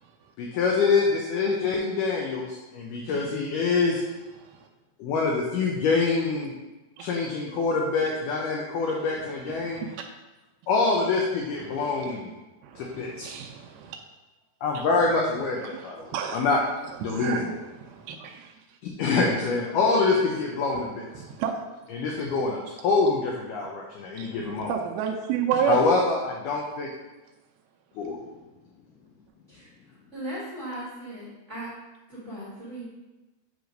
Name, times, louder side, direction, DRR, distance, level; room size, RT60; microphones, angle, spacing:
voice 1, 0.4-4.0 5.0-6.5 7.0-9.9 10.7-12.3 12.8-13.3 14.6-16.6 17.0-17.6 18.8-21.1 21.9-24.7 25.7-26.9 28.0-28.2, left 4 dB, 75° left, -1 dB, 2.0 m, -25 dB
voice 2, 9.6-10.0 11.9-12.1 12.6-14.0 15.7-16.4 17.0-17.4 17.8-18.5 21.2-21.5 24.2-25.9, right 8 dB, 80° right, 1 dB, 2.4 m, -30 dB
voice 3, 30.1-31.7 32.1-32.9, right 1 dB, 50° right, -9 dB, 0.8 m, -37 dB
7.9 x 3.2 x 5.1 m, 1.1 s
omnidirectional pair, 4.5 m